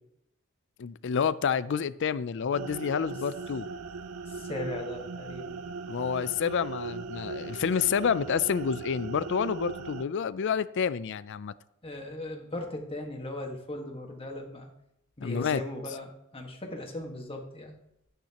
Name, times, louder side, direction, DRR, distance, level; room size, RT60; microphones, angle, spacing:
voice 1, 0.8-3.7 5.9-11.5 15.2-15.6, left 6 dB, 55° left, 0.4 m, -29 dB
sound 1, 2.5-10.0, right 4 dB, 85° right, 0.5 m, -38 dB
voice 2, 4.2-5.6 11.8-14.7 15.2-17.7, left 1 dB, 25° left, 1.6 m, -38 dB
13.0 x 9.0 x 2.9 m
head